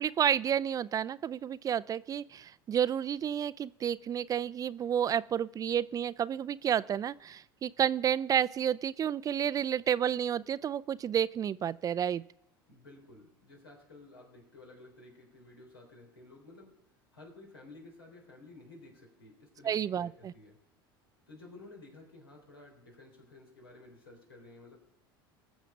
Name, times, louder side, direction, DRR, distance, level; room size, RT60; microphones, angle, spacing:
voice 1, 0.0-12.2 19.6-20.3, right 9 dB, 30° right, 17 dB, 0.4 m, -30 dB
voice 2, 12.7-16.7 17.1-20.6 21.3-24.8, left 2 dB, 90° left, 0 dB, 3.7 m, -53 dB
19.5 x 7.2 x 5.0 m, 0.81 s
hypercardioid pair, 80°, 12 cm